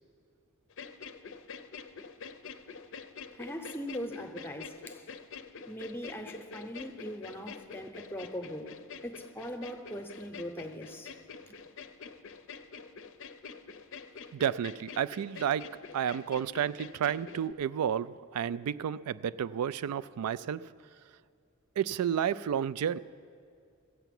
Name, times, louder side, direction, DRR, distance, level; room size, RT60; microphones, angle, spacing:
sound 1, 0.7-17.5, left 5 dB, 60° left, 0.5 m, -46 dB
voice 1, 3.3-5.1 5.7-8.8 9.0-11.1, equal, 10° left, 6 dB, 0.7 m, -40 dB
voice 2, 14.3-20.6 21.8-23.0, right 9 dB, 85° right, 17 dB, 0.3 m, -31 dB
15.0 x 8.1 x 7.6 m, 2.3 s
head